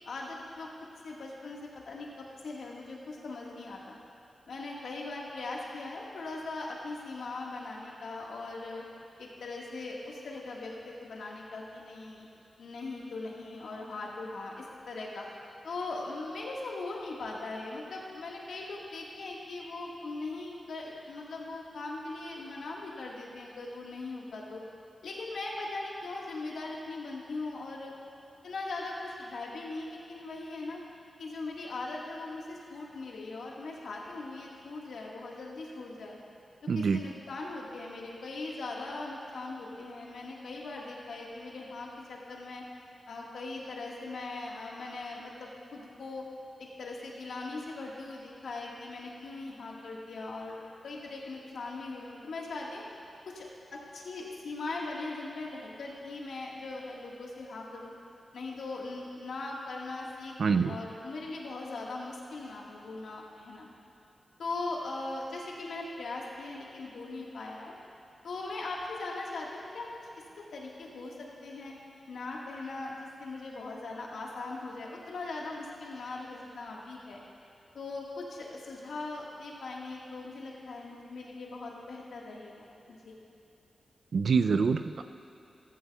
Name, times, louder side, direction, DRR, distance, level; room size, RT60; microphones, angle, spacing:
voice 1, 0.0-0.7 1.0-4.0 4.5-8.8 9.2-12.2 12.6-15.3 15.6-24.6 25.0-27.9 28.4-30.8 31.2-36.2 36.7-42.6 43.1-46.2 46.6-52.8 53.2-53.5 53.7-57.9 58.3-63.7 64.4-67.7 68.2-70.1 70.5-71.7 72.1-77.2 77.7-83.2, left 3 dB, 85° left, -3 dB, 1.6 m, -40 dB
voice 2, 36.7-37.0 60.4-60.8 84.1-85.0, right 5 dB, 70° right, 9 dB, 0.3 m, -25 dB
14.5 x 14.5 x 2.3 m, 2.9 s
cardioid pair, 55°, 0 cm